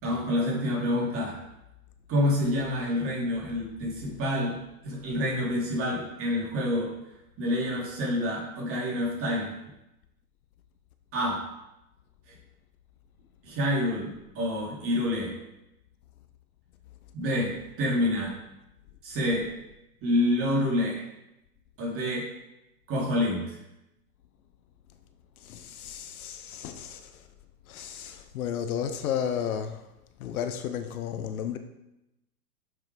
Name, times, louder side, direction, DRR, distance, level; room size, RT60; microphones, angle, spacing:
voice 1, 0.0-1.4 2.1-4.6 4.8-6.9 7.4-9.5 11.1-11.4 13.4-15.3 17.1-18.3 19.0-19.5 20.0-21.1 21.8-22.3 22.9-23.5, left 1 dB, 25° right, -3 dB, 2.6 m, -27 dB
voice 2, 25.4-27.2 27.7-29.8 30.2-31.6, left 8 dB, 60° left, 8 dB, 0.8 m, -33 dB
7.5 x 6.0 x 4.6 m, 0.92 s
hypercardioid pair, 130°, 49 cm